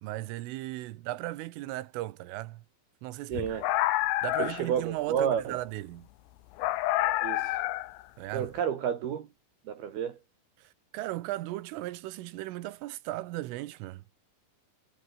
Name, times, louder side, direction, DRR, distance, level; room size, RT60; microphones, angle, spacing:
voice 1, 0.0-2.6 3.0-3.6 4.2-6.1 8.2-8.5 10.6-14.0, right 17 dB, 85° right, 3.6 m, -37 dB
sound 1, 3.3-4.7 6.6-8.0, left 16 dB, 75° left, 2.8 m, -28 dB
voice 2, 3.3-3.7 4.4-5.6 7.2-7.6 8.3-9.3 9.7-10.2, right 8 dB, 60° right, 3.4 m, -31 dB
omnidirectional pair, 5.7 m